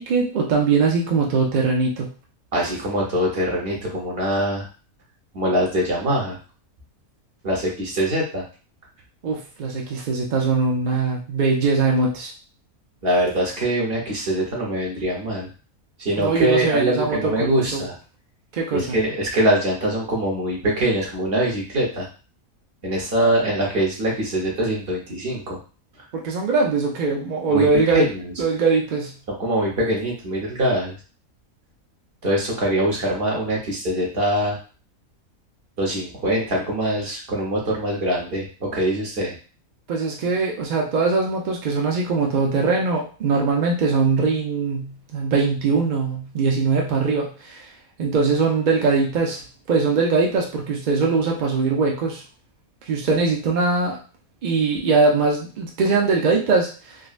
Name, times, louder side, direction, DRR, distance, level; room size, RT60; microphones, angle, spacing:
voice 1, 0.0-2.1 9.2-12.3 16.2-17.8 18.5-19.0 26.1-28.1 28.4-29.1 39.9-47.7 48.0-49.4 49.7-52.2 52.9-54.0 54.4-57.0, right 4 dB, 60° right, -1 dB, 0.4 m, -21 dB
voice 2, 2.5-4.7 5.3-6.4 7.4-8.4 13.0-15.5 16.0-17.9 18.7-22.1 22.8-25.6 27.5-27.7 27.9-28.3 29.4-30.9 32.2-34.6 35.8-39.3, right 1 dB, 45° right, -2 dB, 1.2 m, -23 dB
3.7 x 2.1 x 2.4 m, 0.36 s
omnidirectional pair, 1.5 m